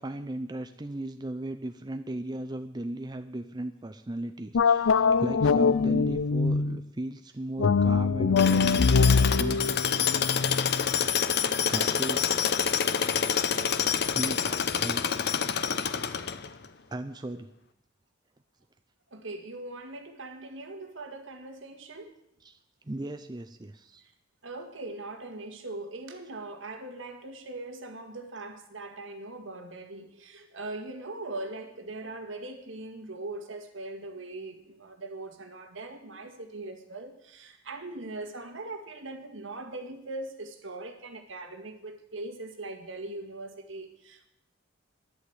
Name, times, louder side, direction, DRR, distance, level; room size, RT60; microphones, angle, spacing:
voice 1, 0.0-8.8 9.4-9.8 11.7-12.2 14.1-15.2 16.9-17.5 22.4-22.6 22.9-24.0, right 1 dB, 20° right, 8 dB, 0.6 m, -36 dB
sound 1, 4.5-6.8 7.6-10.9, left 5 dB, 85° left, 0.5 m, -23 dB
Tools, 8.4-16.7, left 7 dB, 55° left, 0.7 m, -27 dB
voice 2, 19.1-22.1 24.4-44.3, right 2 dB, 70° right, 5 dB, 1.9 m, -40 dB
11.5 x 10.5 x 7.9 m, 0.82 s
head